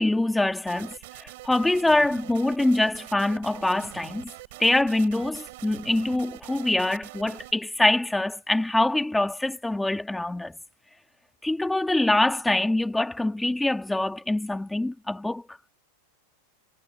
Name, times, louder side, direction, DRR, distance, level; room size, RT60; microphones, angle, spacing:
voice 1, 0.0-4.3 4.6-10.6 11.4-15.7, left 2 dB, 5° left, 1.8 m, -24 dB
sound 1, 0.6-7.5, right 20 dB, 55° right, 3.7 m, -44 dB
supercardioid pair, 165°, 0 cm